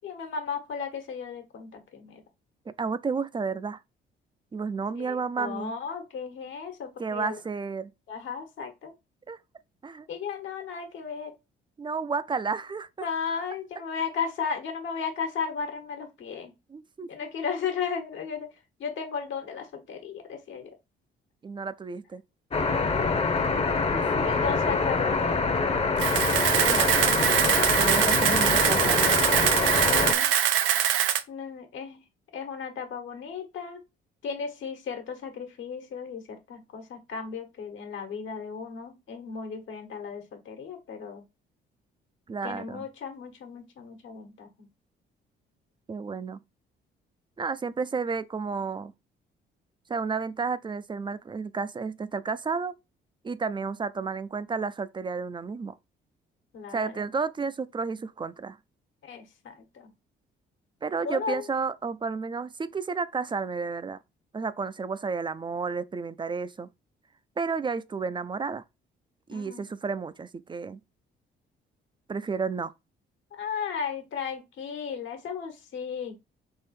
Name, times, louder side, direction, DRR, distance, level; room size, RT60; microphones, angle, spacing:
voice 1, 0.0-2.2 5.0-7.4 8.1-8.9 10.1-11.3 13.0-16.5 17.1-18.5 18.8-20.7 22.9-23.3 24.2-25.6 29.7-30.3 31.3-32.0 32.3-33.8 34.2-41.2 42.4-44.7 56.5-57.0 59.0-59.9 61.0-61.5 69.3-69.7 73.3-76.2, left 6 dB, 75° left, 1.4 m, -35 dB
voice 2, 2.7-3.8 4.5-5.8 7.0-7.9 9.3-9.4 9.8-10.1 11.8-13.1 16.7-17.1 21.4-22.2 23.9-24.4 26.6-27.2 27.8-29.1 42.3-42.9 45.9-46.4 47.4-48.9 49.9-52.7 53.2-55.8 56.7-58.6 60.8-64.0 64.3-66.7 67.4-68.6 69.3-70.8 72.1-72.7, right 5 dB, 25° right, 0.4 m, -32 dB
sound 1, 22.5-30.1, left 4 dB, 30° left, 0.8 m, -25 dB
Camera, 26.0-31.2, right 10 dB, 85° right, 0.6 m, -23 dB
3.8 x 3.0 x 4.2 m
cardioid pair, 90°, 20 cm